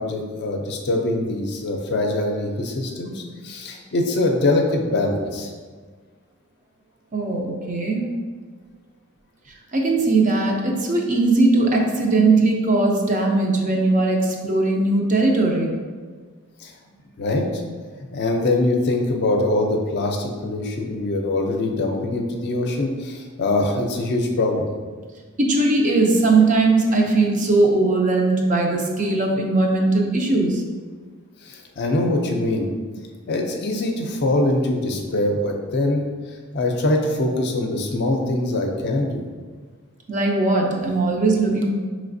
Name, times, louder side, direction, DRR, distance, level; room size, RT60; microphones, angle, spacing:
voice 1, 0.0-5.5 16.6-16.7 17.2-17.4 18.1-24.7 31.4-32.7 33.3-36.0 36.5-39.2, left 2 dB, 50° left, 2 dB, 0.5 m, -23 dB
voice 2, 7.1-8.1 9.7-15.7 25.4-30.6 40.1-41.7, right 2 dB, 35° right, 0 dB, 0.5 m, -19 dB
4.9 x 3.1 x 2.6 m, 1.5 s
head